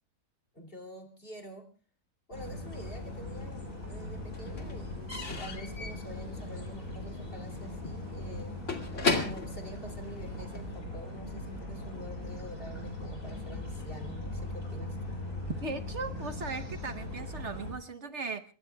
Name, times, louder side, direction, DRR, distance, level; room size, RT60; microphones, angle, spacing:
voice 1, 0.5-1.7 2.3-8.6 9.2-15.2, equal, 40° left, 3 dB, 3.0 m, -47 dB
sound 1, 2.3-17.7, left 1 dB, 70° left, 8.4 m, -40 dB
Slam / Squeak / Wood, 2.8-3.7 3.9-10.7, left 3 dB, 55° left, 2.6 m, -36 dB
voice 2, 15.6-18.4, right 3 dB, 55° right, 9 dB, 1.2 m, -38 dB
27.5 x 22.0 x 2.3 m, 0.36 s
omnidirectional pair, 1.5 m